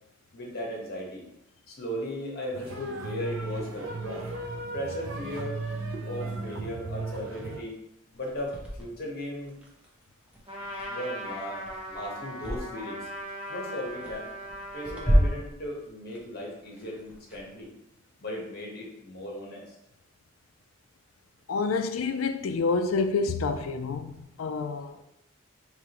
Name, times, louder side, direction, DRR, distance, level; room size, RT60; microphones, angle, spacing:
voice 1, 0.3-1.2 1.7-4.3 4.7-5.6 6.1-7.7 8.1-9.6 10.9-11.6 11.9-13.1 13.5-14.3 14.7-17.7 18.2-19.8, equal, 50° left, 1.1 m, -37 dB
sound 1, 2.5-7.6, right 2 dB, 80° right, 0.6 m, -35 dB
sound 2, 8.1-12.6 13.0-17.6, equal, 5° right, 0.8 m, -31 dB
Trumpet, 10.5-15.4, equal, 25° right, 1.0 m, -39 dB
voice 2, 21.5-24.1 24.4-25.0, left 4 dB, 90° left, 0.4 m, -28 dB
4.8 x 3.0 x 2.9 m
head